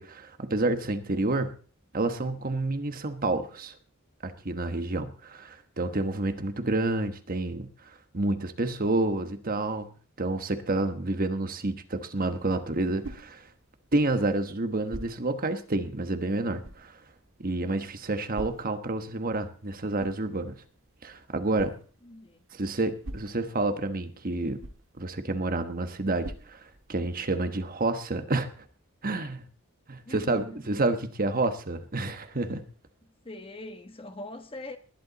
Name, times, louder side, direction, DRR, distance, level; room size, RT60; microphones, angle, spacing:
voice 1, 0.0-1.6 1.9-3.8 4.2-9.9 10.2-13.5 13.9-17.0 17.4-20.6 21.0-21.8 22.5-24.6 25.0-28.6 29.0-29.4 29.9-32.6, right 2 dB, 45° right, 1.2 m, -29 dB
sound 1, 12.4-27.3, right 1 dB, 70° right, 1.7 m, -48 dB
voice 2, 22.0-22.4 30.1-30.6 33.2-34.8, left 2 dB, 25° left, 1.3 m, -42 dB
20.0 x 11.0 x 4.1 m
head